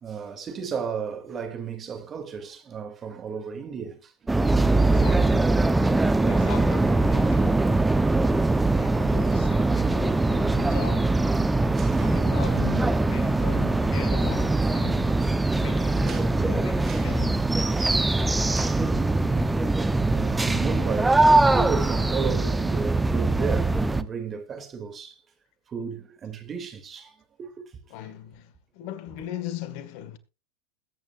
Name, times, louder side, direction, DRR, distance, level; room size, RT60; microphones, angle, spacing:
voice 1, 0.0-4.3 4.8-4.9 5.2-5.4 6.0-6.5 8.7-9.2 11.8-12.2 14.2-14.3 15.5-16.2 16.8-17.2 17.8-19.6 20.1-25.2 25.7-27.7, right 6 dB, 30° right, 2.8 m, -35 dB
sound 1, 4.3-24.0, right 2 dB, 10° right, 0.9 m, -22 dB
voice 2, 4.7-5.6 6.2-7.9 8.7-11.2 12.0-15.2 15.5-17.5 27.9-30.2, left 10 dB, 55° left, 1.9 m, -38 dB
21.0 x 9.4 x 2.6 m
hypercardioid pair, 95°, 0 cm